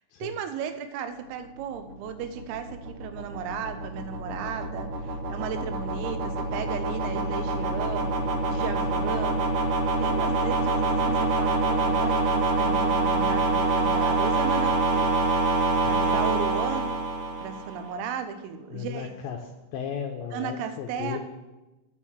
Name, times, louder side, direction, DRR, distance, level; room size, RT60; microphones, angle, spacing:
voice 1, 0.2-15.1 15.9-16.9 17.4-19.1 20.3-21.2, right 7 dB, 90° right, 8 dB, 3.5 m, -35 dB
sound 1, 1.7-17.9, right 2 dB, 75° right, 1.9 m, -26 dB
voice 2, 15.8-16.2 18.7-19.4 19.7-21.2, left 8 dB, 85° left, 2 dB, 2.6 m, -35 dB
9.6 x 6.6 x 7.2 m, 1.1 s
omnidirectional pair, 5.8 m